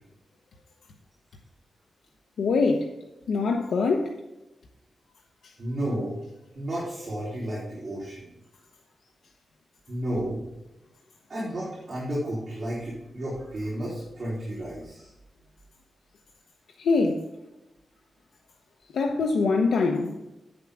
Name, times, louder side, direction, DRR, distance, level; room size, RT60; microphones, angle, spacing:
voice 1, 2.4-2.9 3.3-4.1 16.8-17.2 18.9-20.2, left 4 dB, 90° left, 0.9 m, -23 dB
voice 2, 5.6-6.2 6.5-8.3 9.9-10.4 11.3-15.1, right 1 dB, 40° right, 4.1 m, -32 dB
8.7 x 7.4 x 4.9 m
wide cardioid pair, 160°, 0 cm